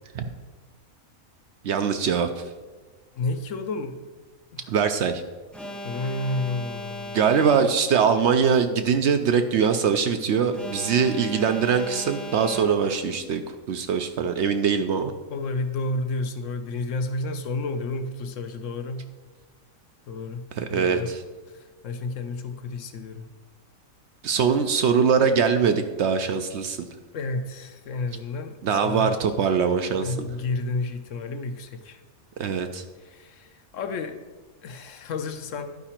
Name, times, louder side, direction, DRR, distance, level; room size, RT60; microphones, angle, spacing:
voice 1, 1.6-2.4 4.7-5.2 7.1-13.4 13.7-15.1 20.6-21.2 24.2-26.9 28.6-30.3 32.4-32.8, right 6 dB, 65° right, 7 dB, 0.7 m, -22 dB
voice 2, 3.2-4.0 4.5-4.7 5.8-7.2 15.3-19.1 20.1-21.1 21.5-23.3 27.1-29.1 30.0-32.0 33.0-34.2 34.6-35.8, left 3 dB, 70° left, 8 dB, 1.0 m, -31 dB
Alarm, 5.5-8.1 10.5-13.1, equal, ahead, 0.4 m, -37 dB
11.0 x 4.8 x 4.3 m, 1.3 s
omnidirectional pair, 1.4 m